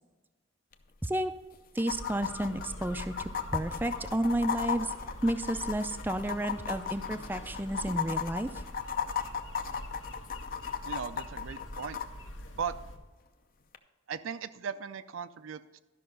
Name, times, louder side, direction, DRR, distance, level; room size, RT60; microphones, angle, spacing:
sound 1, 0.7-0.8 1.0-1.1 1.8-12.1 13.7-13.8, left 7 dB, 45° left, 0.6 m, -35 dB
voice 1, 1.7-4.9 5.2-8.5, right 1 dB, 10° right, 9 dB, 0.4 m, -31 dB
sound 2, 1.9-13.0, left 1 dB, 70° left, 1.1 m, -44 dB
voice 2, 10.8-12.0 12.5-12.8 14.1-15.8, right 6 dB, 80° right, 12 dB, 0.5 m, -38 dB
12.5 x 5.8 x 5.3 m, 1.2 s
head